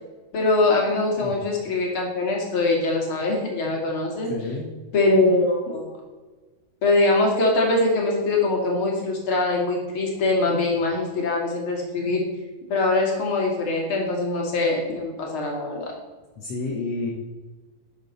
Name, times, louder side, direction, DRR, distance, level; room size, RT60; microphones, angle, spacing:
voice 1, 0.3-4.3 4.9-5.9 6.8-12.2 12.7-15.9, left 2 dB, 45° left, -1 dB, 3.0 m, -22 dB
voice 2, 4.3-4.7 16.4-17.1, left 3 dB, 60° left, -1 dB, 2.3 m, -29 dB
12.0 x 7.2 x 4.1 m, 1.3 s
omnidirectional pair, 3.5 m